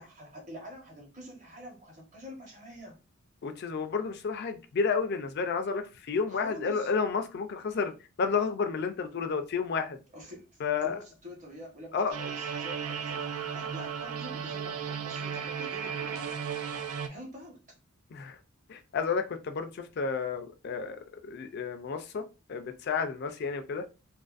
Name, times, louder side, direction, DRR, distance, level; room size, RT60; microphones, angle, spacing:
voice 1, 0.0-3.0 6.3-6.9 10.1-16.4 17.1-17.6, equal, 35° right, 1.0 m, -46 dB
voice 2, 3.4-7.9 8.2-10.0 10.6-11.0 11.9-12.1 18.1-18.4 18.7-23.8, left 5 dB, 50° left, 0.3 m, -31 dB
sound 1, 12.1-17.1, right 7 dB, 85° right, 0.4 m, -35 dB
2.5 x 2.5 x 2.3 m
head